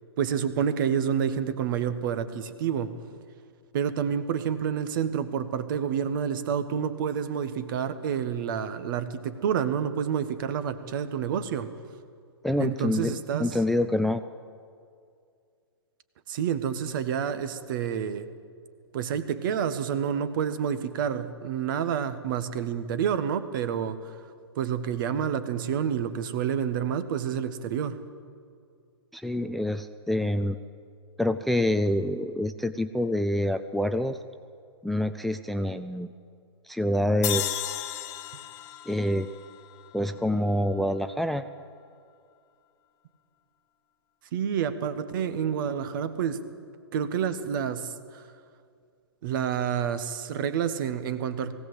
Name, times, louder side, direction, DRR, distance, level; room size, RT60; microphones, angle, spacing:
voice 1, 0.2-3.0 3.7-11.7 12.6-13.6 16.3-18.3 18.9-24.2 24.5-28.0 44.3-46.4 46.9-48.3 49.2-51.5, right 8 dB, 50° right, 12 dB, 1.5 m, -29 dB
voice 2, 12.4-13.1 13.4-14.2 29.1-30.6 31.2-34.2 34.8-36.1 36.6-37.9 38.9-39.3 39.9-41.4, left 1 dB, ahead, 9 dB, 0.4 m, -26 dB
sound 1, 37.2-40.5, left 13 dB, 35° left, 1.2 m, -34 dB
19.5 x 17.0 x 7.9 m, 2.3 s
hypercardioid pair, 125°, 14 cm